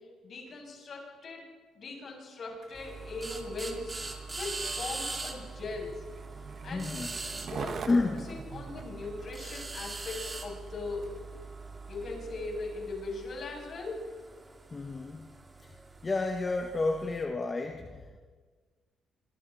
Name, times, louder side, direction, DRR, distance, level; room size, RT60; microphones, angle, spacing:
voice 1, 0.2-1.4 1.7-4.0 4.4-6.0 6.6-7.2 7.5-8.0 8.3-11.1 11.9-14.1, left 3 dB, 50° left, 0 dB, 7.6 m, -39 dB
Skateboard, 2.5-11.3 11.9-12.1, right 6 dB, 55° right, 1.6 m, -46 dB
sound 1, 2.7-17.2, right 3 dB, 25° right, 2.9 m, -42 dB
voice 2, 6.7-7.1 7.9-8.3 14.7-15.3 15.6-15.7 16.0-18.2, left 3 dB, 30° left, 3 dB, 1.7 m, -31 dB
26.5 x 24.5 x 4.4 m, 1.5 s
cardioid pair, 90°, 0 cm